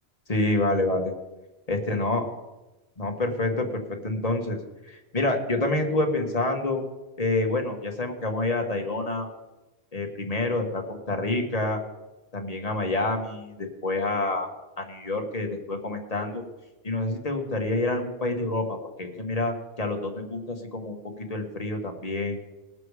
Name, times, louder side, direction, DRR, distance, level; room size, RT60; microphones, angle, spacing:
voice 1, 0.3-1.1 1.7-2.2 3.0-4.6 4.8-6.8 7.2-9.3 9.9-11.8 12.3-14.5 14.8-16.4 16.8-22.4, left 2 dB, 35° left, 3 dB, 1.7 m, -27 dB
20.5 x 6.9 x 4.9 m, 1.1 s
omnidirectional pair, 1.1 m